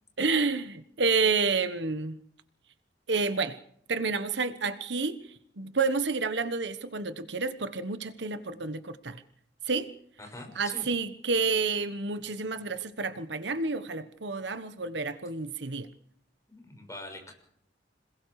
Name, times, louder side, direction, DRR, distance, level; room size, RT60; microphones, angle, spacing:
voice 1, 0.2-2.2 3.1-3.6 3.9-9.2 9.6-9.9 10.5-15.9, right 4 dB, 70° right, 12 dB, 1.2 m, -29 dB
voice 2, 10.2-10.9 16.5-17.3, left 2 dB, 20° left, 3 dB, 6.4 m, -43 dB
27.0 x 21.0 x 4.9 m, 0.66 s
head